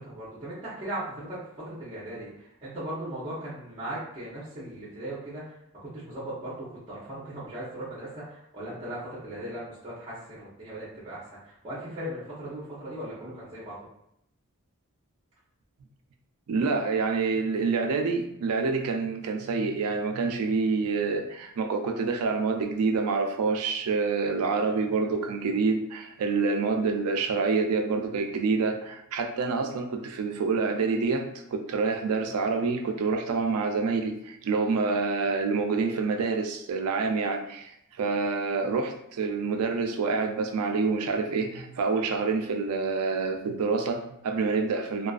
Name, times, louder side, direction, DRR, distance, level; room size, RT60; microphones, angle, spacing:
voice 1, 0.0-13.8, right 1 dB, 25° right, -8 dB, 0.6 m, -38 dB
voice 2, 16.5-37.7 38.0-45.1, right 4 dB, 80° right, 4 dB, 0.4 m, -27 dB
2.4 x 2.3 x 2.3 m, 0.77 s
head